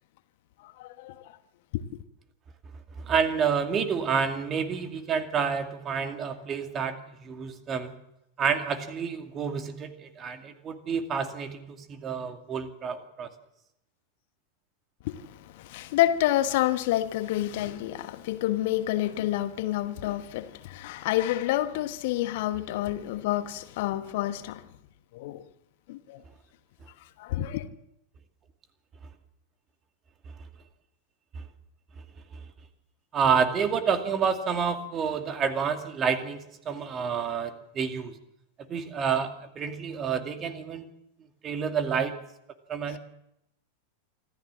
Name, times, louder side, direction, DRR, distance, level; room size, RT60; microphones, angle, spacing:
voice 1, 0.6-1.4 1.7-1.8 15.0-24.6 25.1-25.5 25.9-26.2 27.2-27.7 42.9-43.0, left 14 dB, 50° left, 1.2 m, -29 dB
voice 2, 3.0-6.9 7.2-8.0 8.4-13.3 31.3-31.4 33.1-38.2 38.7-40.8 41.4-42.1 42.7-43.0, right 6 dB, 25° right, 2.4 m, -29 dB
26.0 x 14.5 x 7.5 m
figure-of-eight pair, 90°, 0 cm